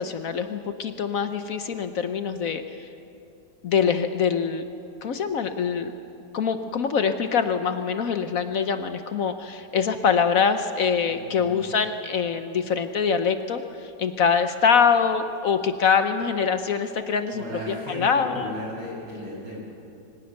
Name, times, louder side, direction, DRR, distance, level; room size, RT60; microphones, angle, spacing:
voice 1, 0.0-2.9 3.6-4.6 5.0-5.9 6.3-18.5, left 6 dB, 60° left, 9 dB, 1.1 m, -24 dB
voice 2, 11.0-11.7 17.3-19.7, equal, 85° right, -4 dB, 7.1 m, -36 dB
23.5 x 17.5 x 6.6 m, 2.7 s
omnidirectional pair, 1.9 m